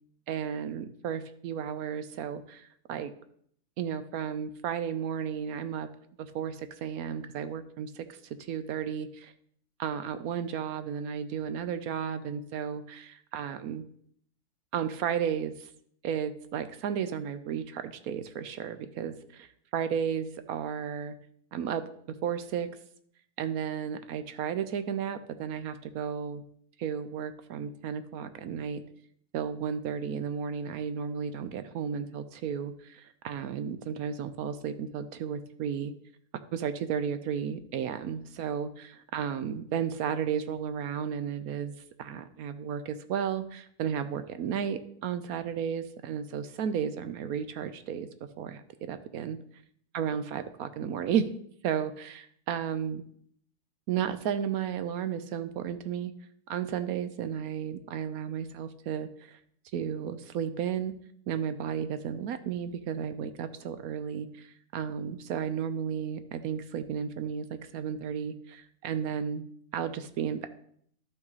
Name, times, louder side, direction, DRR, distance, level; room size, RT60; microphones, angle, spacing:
voice 1, 0.3-3.1 3.8-5.9 6.2-9.3 9.8-13.8 14.7-15.7 16.0-21.1 21.5-21.8 22.2-22.7 23.4-26.4 26.8-28.8 29.3-35.9 36.5-48.1 48.4-49.4 49.9-51.3 51.6-53.0 53.9-56.1 56.5-59.4 59.7-61.0 61.3-69.4 69.7-70.5, right 8 dB, 70° right, 11 dB, 1.0 m, -33 dB
11.5 x 5.8 x 4.0 m, 0.65 s
omnidirectional pair, 1.7 m